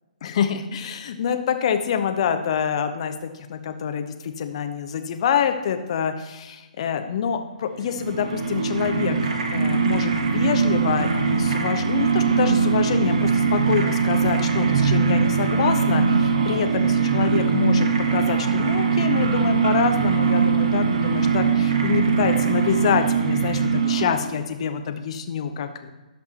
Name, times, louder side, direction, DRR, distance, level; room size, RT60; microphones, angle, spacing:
voice 1, 0.2-25.9, left 7 dB, 45° left, 7 dB, 1.0 m, -26 dB
sound 1, 7.7-24.4, right 5 dB, 50° right, 1.1 m, -21 dB
16.5 x 5.8 x 3.0 m, 1.2 s
figure-of-eight pair, 130°, 4 cm